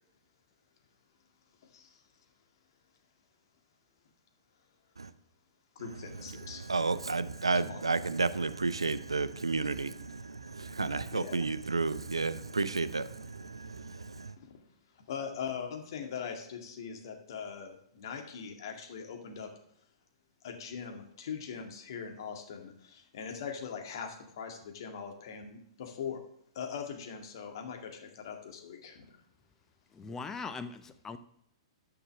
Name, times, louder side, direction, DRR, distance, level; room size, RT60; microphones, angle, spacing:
voice 1, 5.8-6.6 7.6-7.8 11.1-11.4 14.4-14.6 14.9-19.5 20.4-26.2 26.5-29.2, left 7 dB, 55° left, 1.9 m, -41 dB
voice 2, 6.4-14.3, right 3 dB, 85° right, 0.6 m, -32 dB
voice 3, 29.9-31.2, left 4 dB, 15° left, 0.7 m, -40 dB
10.0 x 6.0 x 6.4 m
figure-of-eight pair, 110°, 3 cm